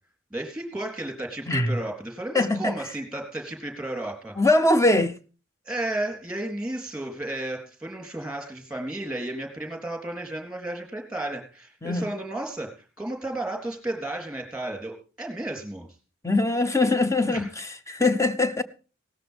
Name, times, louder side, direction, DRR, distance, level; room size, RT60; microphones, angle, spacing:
voice 1, 0.3-4.4 5.7-15.9 17.3-17.5, right 1 dB, 5° right, 3.5 m, -33 dB
voice 2, 1.5-1.8 2.3-2.7 4.4-5.2 11.8-12.1 16.2-18.6, left 2 dB, 15° left, 0.7 m, -22 dB
18.0 x 13.5 x 3.5 m
head